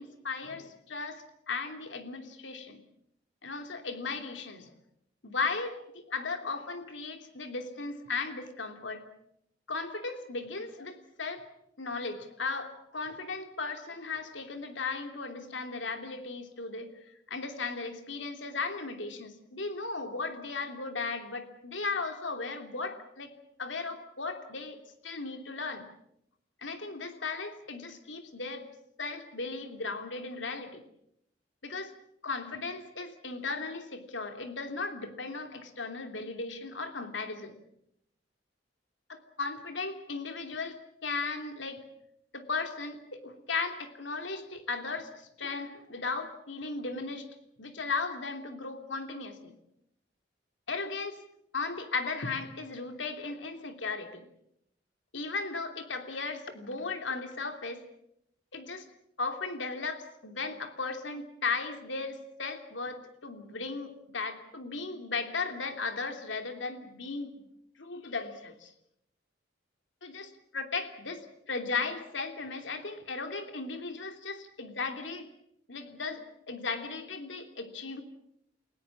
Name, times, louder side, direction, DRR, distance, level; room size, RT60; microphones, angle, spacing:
voice 1, 0.0-2.8 3.4-4.7 5.2-9.0 9.7-11.5 11.8-16.9 17.3-23.3 23.6-24.8 25.0-25.9 26.6-28.6 29.0-30.8 31.6-31.9 32.2-37.6 39.1-41.8 42.3-47.3 47.6-49.5 50.7-51.2 51.5-54.2 55.1-57.8 58.5-58.8 59.2-67.4 67.8-68.7 70.0-75.3 75.7-78.0, left 4 dB, 90° left, 6 dB, 3.0 m, -36 dB
30.0 x 17.0 x 7.4 m, 0.77 s
head